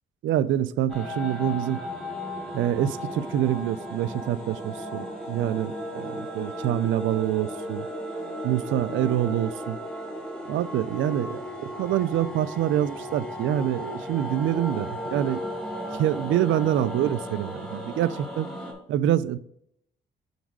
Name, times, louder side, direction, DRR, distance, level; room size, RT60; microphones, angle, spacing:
voice 1, 0.2-1.8 2.5-7.8 8.4-9.8 10.5-15.4 15.9-18.5 18.9-19.4, right 12 dB, 75° right, 17 dB, 0.4 m, -26 dB
sound 1, 0.9-18.7, equal, 5° left, 2.9 m, -35 dB
7.1 x 3.9 x 4.6 m, 0.72 s
cardioid pair, 90°, 20 cm